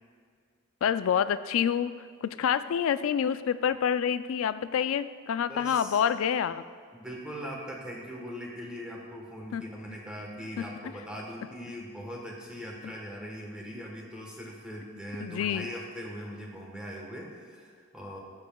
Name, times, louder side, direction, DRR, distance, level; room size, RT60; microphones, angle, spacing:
voice 1, 0.8-1.9 2.2-6.6 9.5-9.6 10.6-10.7 15.2-15.7, left 8 dB, 75° left, 13 dB, 0.3 m, -27 dB
voice 2, 5.5-6.0 6.9-18.2, equal, 5° right, -2 dB, 1.1 m, -40 dB
12.5 x 7.2 x 2.3 m, 2.1 s
head